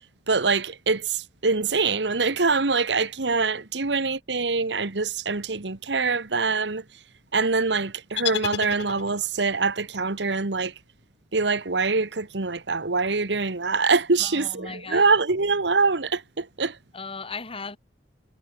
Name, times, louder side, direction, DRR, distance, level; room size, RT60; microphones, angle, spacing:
voice 1, 0.3-6.8 7.3-10.7 11.3-16.8, right 4 dB, 80° right, 1.4 m, -24 dB
sound 1, 8.2-9.5, left 8 dB, 75° left, 1.5 m, -31 dB
voice 2, 14.2-15.2 16.9-17.8, left 4 dB, 30° left, 2.0 m, -37 dB
head